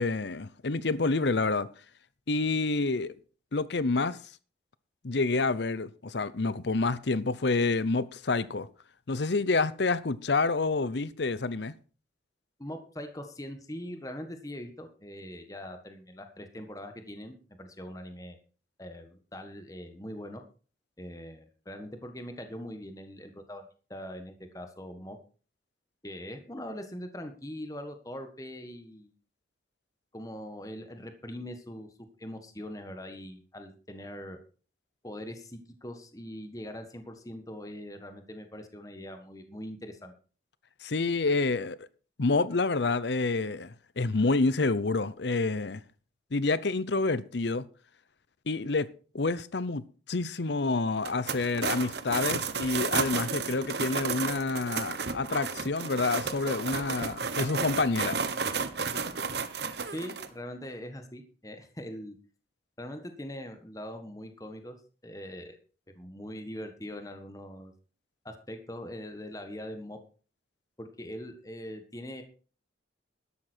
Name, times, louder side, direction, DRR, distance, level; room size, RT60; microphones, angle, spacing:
voice 1, 0.0-1.7 2.3-3.1 3.5-4.2 5.0-8.7 9.1-11.7 40.8-41.9 42.2-45.8 46.3-47.7 48.5-48.9 49.1-58.3, left 3 dB, 65° left, 0.7 m, -28 dB
voice 2, 12.6-18.4 18.8-20.4 21.0-23.6 23.9-25.2 26.0-29.1 30.1-31.9 32.2-34.4 35.0-40.1 59.9-62.2 62.8-64.8 65.0-65.6 65.9-67.7 68.2-70.0 70.8-72.2, equal, 20° left, 1.4 m, -42 dB
sound 1, 51.0-60.3, right 5 dB, 60° right, 1.2 m, -32 dB
12.5 x 11.5 x 4.5 m
head